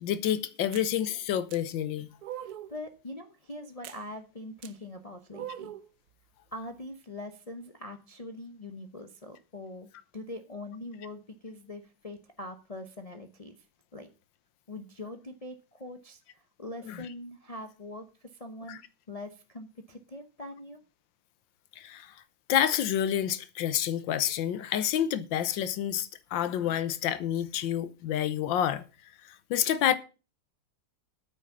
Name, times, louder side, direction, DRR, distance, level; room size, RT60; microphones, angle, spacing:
voice 1, 0.0-2.1 16.9-17.0 18.7-18.8 21.8-22.1 22.5-28.8 29.5-30.0, left 10 dB, 90° left, 1.5 m, -28 dB
sound 1, 0.7-0.9 1.5-1.6 2.2-2.8 3.8-4.0 4.6-4.7 5.3-5.9, right 11 dB, 65° right, 1.1 m, -41 dB
voice 2, 2.4-5.7 6.5-13.6 13.9-14.1 14.7-18.8 19.1-20.8, left 1 dB, 35° left, 0.5 m, -43 dB
9.0 x 6.3 x 7.1 m
omnidirectional pair, 2.0 m